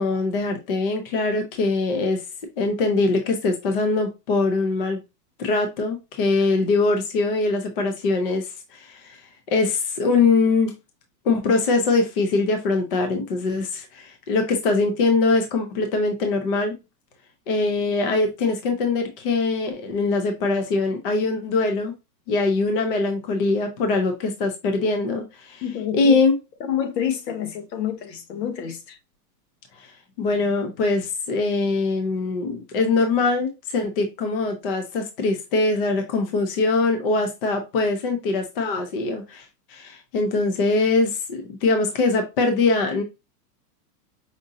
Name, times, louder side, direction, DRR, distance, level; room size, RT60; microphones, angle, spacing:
voice 1, 0.0-2.2 2.6-5.0 5.4-9.2 9.5-10.7 11.2-16.7 17.5-21.9 22.3-26.3 30.2-39.4 39.7-43.0, left 3 dB, 35° left, 0.6 m, -22 dB
voice 2, 25.6-26.2 26.7-29.0, left 9 dB, 75° left, 1.2 m, -28 dB
5.1 x 2.7 x 2.6 m
supercardioid pair, 170°, 49 cm